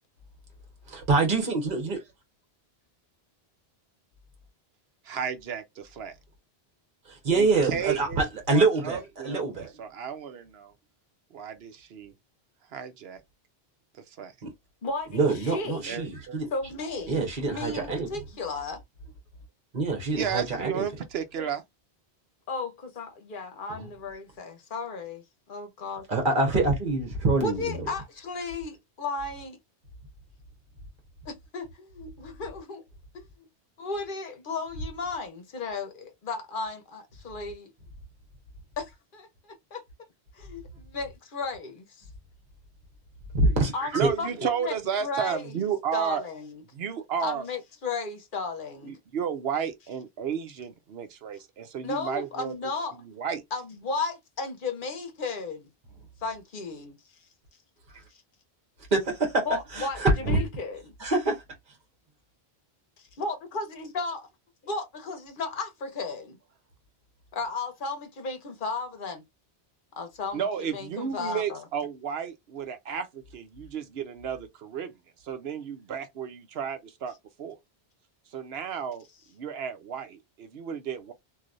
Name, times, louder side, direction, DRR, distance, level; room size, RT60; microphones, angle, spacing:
voice 1, 0.9-2.0 7.1-9.7 14.4-14.5 15.1-16.5 17.1-18.1 19.7-20.8 23.7-23.9 26.1-27.9 43.3-44.1 58.9-59.5 59.7-60.5 61.0-61.4, right 3 dB, 50° right, 1.4 m, -25 dB
voice 2, 5.0-6.2 7.3-8.2 8.5-10.7 11.3-12.1 12.7-13.2 13.9-14.3 15.9-16.3 20.1-21.6 43.9-46.2 46.7-47.5 48.8-52.5 52.9-53.4 70.3-75.0 75.2-77.6 78.3-81.1, right 7 dB, 70° right, 0.9 m, -33 dB
voice 3, 14.8-16.0 16.5-18.8 21.4-21.5 22.5-25.2 25.5-26.0 27.4-29.6 31.3-32.8 33.4-33.5 33.8-37.7 38.8-39.8 40.3-42.0 43.7-44.7 45.0-45.6 45.9-46.6 47.2-48.9 51.8-53.0 53.5-55.7 56.2-57.0 59.4-60.9 63.0-64.3 64.6-66.4 67.3-69.2 70.0-70.4 70.7-71.6, left 3 dB, 55° left, 1.0 m, -34 dB
3.1 x 2.7 x 2.5 m
omnidirectional pair, 1.1 m